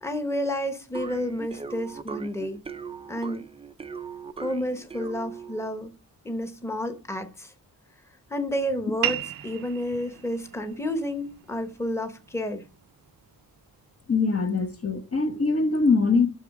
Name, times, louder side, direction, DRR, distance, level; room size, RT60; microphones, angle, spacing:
voice 1, 0.0-2.6 3.1-3.4 4.4-5.9 6.2-7.5 8.3-12.6, left 1 dB, 5° left, 1.0 m, -30 dB
sound 1, 0.9-5.7, right 6 dB, 15° right, 0.4 m, -39 dB
sound 2, 9.0-14.1, right 12 dB, 70° right, 0.6 m, -36 dB
voice 2, 14.1-16.3, left 4 dB, 40° left, 0.9 m, -23 dB
8.5 x 6.2 x 4.7 m
wide cardioid pair, 150°, 36 cm